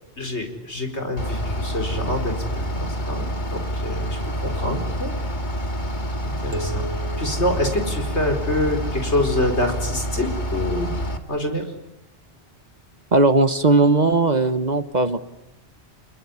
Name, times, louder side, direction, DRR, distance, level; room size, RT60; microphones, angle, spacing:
voice 1, 0.2-5.2 5.6-5.8 6.2-6.9 7.2-10.9 11.3-11.6, left 1 dB, 75° left, 5 dB, 4.9 m, -26 dB
Bus / Idling, 1.2-11.2, equal, 45° left, 2.4 m, -27 dB
sound 1, 6.5-8.9, right 1 dB, 15° right, 1.0 m, -38 dB
voice 2, 13.1-15.2, right 3 dB, 40° right, 12 dB, 1.3 m, -18 dB
29.0 x 20.5 x 9.8 m, 0.86 s
omnidirectional pair, 1.2 m